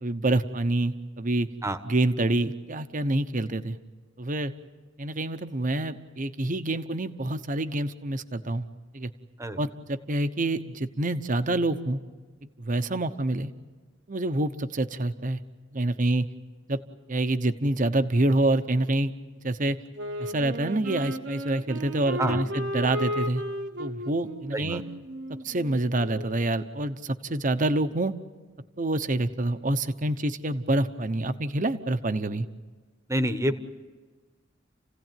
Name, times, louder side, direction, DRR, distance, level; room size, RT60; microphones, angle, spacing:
voice 1, 0.0-1.5 1.9-3.8 4.2-4.5 5.0-8.6 8.9-9.1 9.6-12.0 12.6-13.5 14.1-15.4 15.7-16.3 16.7-16.8 17.1-19.1 19.4-19.8 20.2-23.4 23.8-24.8 25.4-28.1 28.8-32.5, right 2 dB, 45° right, 10 dB, 1.0 m, -27 dB
Wind instrument woodwind instrument, 19.9-26.5, equal, 65° right, 1.3 m, -35 dB
voice 2, 33.1-33.6, right 1 dB, 15° right, 10 dB, 1.2 m, -27 dB
29.5 x 16.5 x 9.2 m, 1.4 s
head